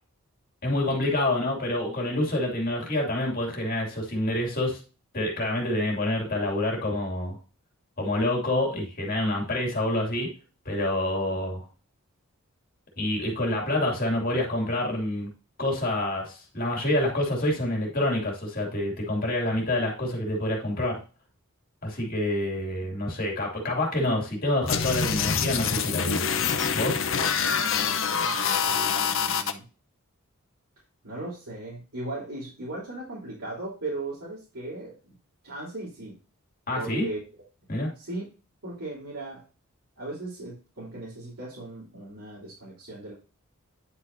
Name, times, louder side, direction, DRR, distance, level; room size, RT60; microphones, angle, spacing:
voice 1, 0.6-4.8 5.1-7.4 8.0-10.3 10.6-11.7 13.0-15.3 15.6-21.0 21.8-26.2 26.7-27.0 36.7-37.1 37.7-37.9, left 1 dB, 40° left, -1 dB, 2.7 m, -27 dB
sound 1, 24.7-29.5, left 6 dB, 60° left, 0.8 m, -26 dB
voice 2, 28.6-29.6 31.0-35.2 35.4-36.1 36.7-37.2 37.9-38.2 38.6-39.4 40.0-43.1, right 2 dB, 85° right, -7 dB, 3.4 m, -37 dB
9.8 x 6.3 x 2.7 m, 0.35 s
head